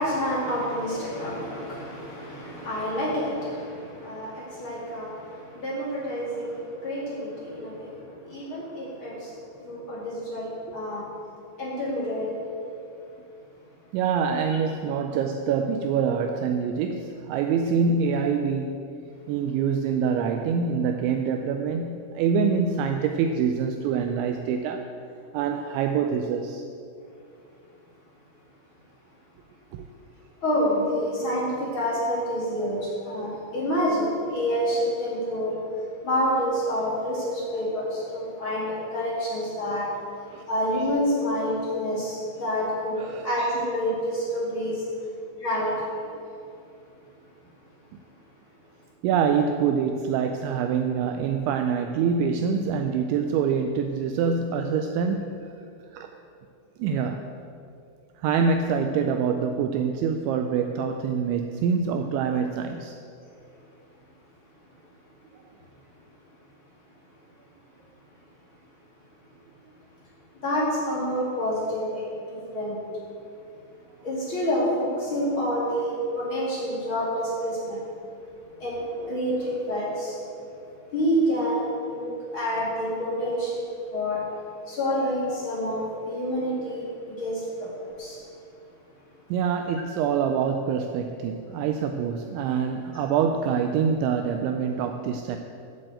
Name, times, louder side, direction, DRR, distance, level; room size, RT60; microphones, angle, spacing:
voice 1, 0.0-9.3 9.6-11.1 11.6-12.4 30.4-39.9 40.5-44.8 45.4-46.1 70.4-72.8 74.0-77.8 78.6-80.2 80.9-83.6 83.9-84.2 84.7-88.2, equal, 40° left, -7 dB, 1.8 m, -28 dB
voice 2, 13.9-18.9 19.3-24.9 25.3-26.7 29.7-29.9 40.3-40.5 43.0-43.3 49.0-55.5 55.9-56.1 56.8-57.3 58.2-63.0 79.0-79.2 89.3-95.4, right 6 dB, 90° right, 6 dB, 2.6 m, -25 dB
9.6 x 7.6 x 7.9 m, 2.6 s
omnidirectional pair, 5.8 m